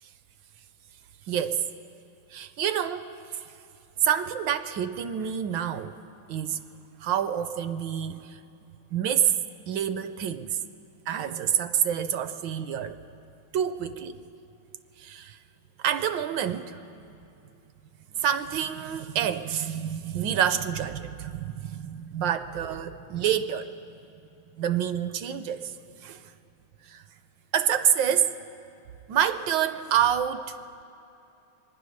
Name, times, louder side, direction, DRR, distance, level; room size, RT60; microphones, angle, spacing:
voice 1, 1.3-1.6 2.3-3.4 4.0-6.0 6.3-6.6 7.0-8.4 8.9-9.3 9.7-10.6 11.1-13.0 13.5-14.2 15.0-15.4 15.8-16.8 18.1-23.7 24.6-26.3 26.8-27.0 27.5-28.4 29.1-30.6, right 9 dB, 75° right, 11 dB, 1.2 m, -27 dB
23.0 x 9.8 x 6.3 m, 2.8 s
omnidirectional pair, 2.2 m